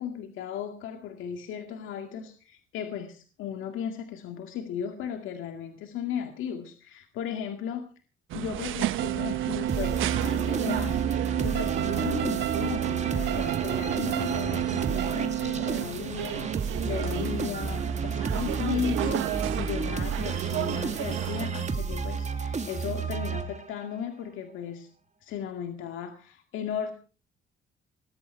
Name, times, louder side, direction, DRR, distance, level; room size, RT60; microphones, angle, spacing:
voice 1, 0.0-7.9 8.3-24.9 25.2-26.9, left 8 dB, 85° left, 5 dB, 2.1 m, -36 dB
sound 1, 8.3-21.5, right 13 dB, 85° right, 1.1 m, -34 dB
sound 2, 9.0-15.8, right 13 dB, 60° right, 0.6 m, -30 dB
sound 3, 9.7-23.9, right 5 dB, 35° right, 2.6 m, -32 dB
20.5 x 12.0 x 4.6 m, 0.38 s
cardioid pair, 90°, 20 cm